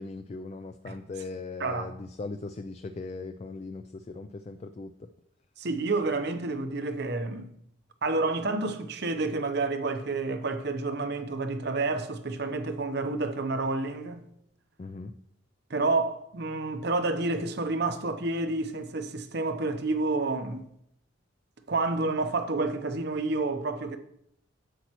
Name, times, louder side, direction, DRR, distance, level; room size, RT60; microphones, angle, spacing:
voice 1, 0.0-5.1 14.8-15.1, left 3 dB, 35° left, 0.3 m, -39 dB
voice 2, 1.6-1.9 5.6-7.5 8.0-14.3 15.7-20.6 21.7-24.0, right 3 dB, 55° right, 0.8 m, -29 dB
10.0 x 7.9 x 3.0 m
head